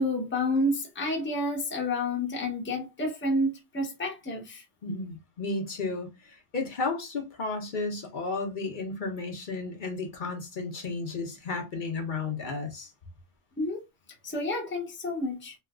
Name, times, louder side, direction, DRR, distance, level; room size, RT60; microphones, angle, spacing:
voice 1, 0.0-4.6 13.6-13.8 14.2-15.5, left 1 dB, 10° left, 0.7 m, -29 dB
voice 2, 4.8-12.9, left 3 dB, 55° left, 0.9 m, -33 dB
3.1 x 2.8 x 2.3 m
omnidirectional pair, 1.1 m